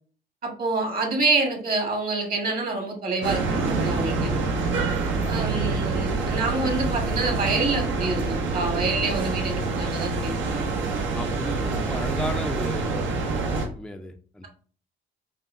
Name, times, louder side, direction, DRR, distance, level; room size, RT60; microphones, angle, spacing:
voice 1, 0.4-4.5 5.3-10.7, right 3 dB, 45° right, 2 dB, 1.4 m, -27 dB
sound 1, 3.2-13.7, right 3 dB, 75° right, 0.9 m, -26 dB
voice 2, 5.0-5.3 11.1-13.3 13.6-14.5, left 1 dB, 5° left, 5 dB, 0.4 m, -34 dB
5.4 x 2.2 x 2.7 m, 0.43 s
cardioid pair, 90°, 20 cm